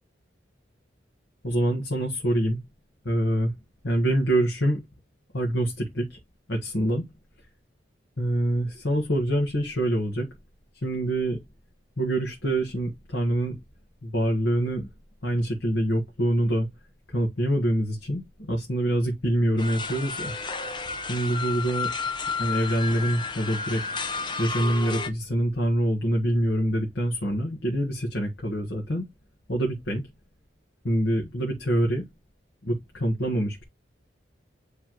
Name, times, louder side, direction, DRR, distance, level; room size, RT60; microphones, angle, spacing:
voice 1, 1.4-2.6 3.0-3.5 3.8-4.8 5.3-6.2 6.5-7.1 8.2-10.3 10.7-11.4 12.0-13.6 14.0-14.9 15.2-16.7 17.1-20.3 21.1-21.9 22.4-23.8 24.4-29.1 29.5-30.0 30.8-32.1 32.6-33.6, right 1 dB, 75° left, 1.5 m, -25 dB
sound 1, 19.6-25.1, left 4 dB, 25° left, 0.6 m, -32 dB
9.7 x 3.3 x 3.0 m
head